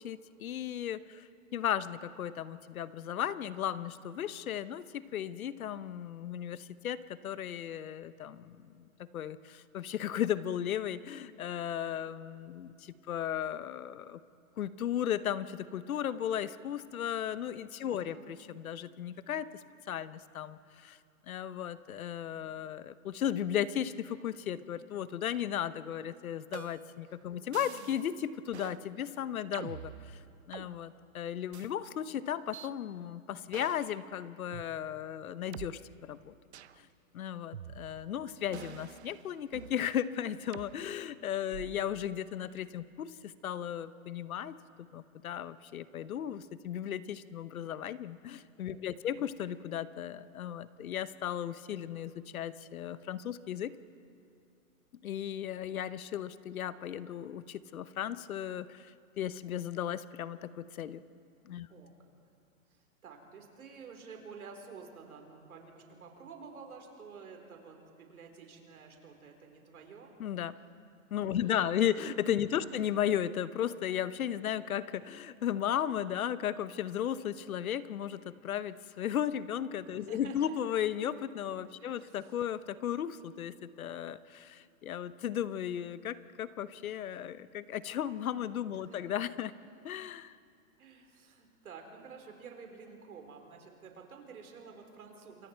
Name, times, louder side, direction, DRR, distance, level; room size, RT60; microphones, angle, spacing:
voice 1, 0.0-8.9 9.1-14.2 14.6-19.5 19.9-21.0 21.3-30.2 30.5-35.8 36.1-36.3 36.8-36.9 37.1-53.8 55.0-61.0 61.4-61.7 70.2-70.5 71.1-89.5 89.8-90.4, left 10 dB, 75° left, 15 dB, 1.0 m, -35 dB
voice 2, 17.8-18.4 27.0-27.1 48.8-49.2 61.7-61.9 62.7-70.1 71.3-72.1 72.7-72.8 80.1-80.5 81.8-82.3 88.9-89.0 90.8-95.5, right 5 dB, 85° right, 3 dB, 4.4 m, -51 dB
sound 1, 26.5-27.0 27.5-28.1 28.5-28.8 29.5-30.7 31.5-31.7 32.5-32.7 33.5-33.9 34.5-34.6 35.5-35.7 36.5-36.8 37.5-38.1 38.5-39.8 40.5-40.7 41.5-41.9, right 10 dB, 50° right, 0.7 m, -46 dB
28.0 x 24.0 x 4.6 m, 2.4 s
hypercardioid pair, 175°, 42 cm